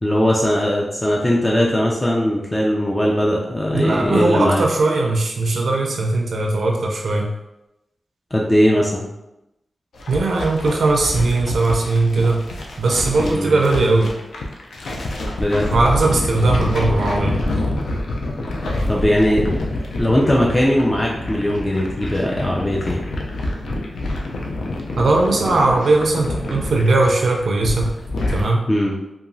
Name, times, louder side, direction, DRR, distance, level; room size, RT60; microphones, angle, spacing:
voice 1, 0.0-4.6 8.3-9.1 13.2-13.6 15.4-15.7 18.9-23.0 28.7-28.9, equal, 20° left, -3 dB, 0.4 m, -19 dB
voice 2, 3.7-7.3 10.1-12.4 12.8-14.1 15.7-17.4 25.0-27.9 28.3-28.6, right 2 dB, 75° right, 0 dB, 0.3 m, -19 dB
sound 1, 9.9-28.4, left 1 dB, 90° left, 0.4 m, -26 dB
2.8 x 2.3 x 2.6 m, 0.92 s
cardioid pair, 75°, 0 cm